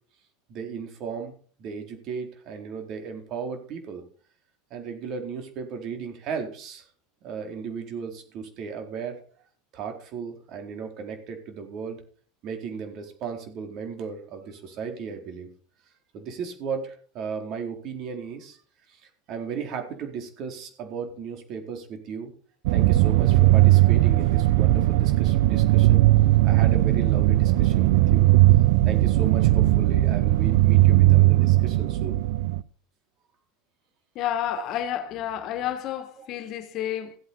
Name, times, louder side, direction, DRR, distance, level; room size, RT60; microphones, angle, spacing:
voice 1, 0.5-1.3 1.6-4.0 4.7-6.9 7.2-9.2 9.7-12.0 12.4-15.5 16.1-18.6 18.9-22.3 22.7-26.0 26.4-28.3 28.8-32.2 34.5-34.6 36.2-36.3, right 6 dB, 50° right, 4.2 m, -35 dB
sound 1, 22.7-32.6, right 16 dB, 70° right, 0.7 m, -18 dB
voice 2, 34.2-37.2, left 11 dB, 50° left, 1.8 m, -30 dB
15.5 x 8.4 x 5.6 m
supercardioid pair, 115°, 0 cm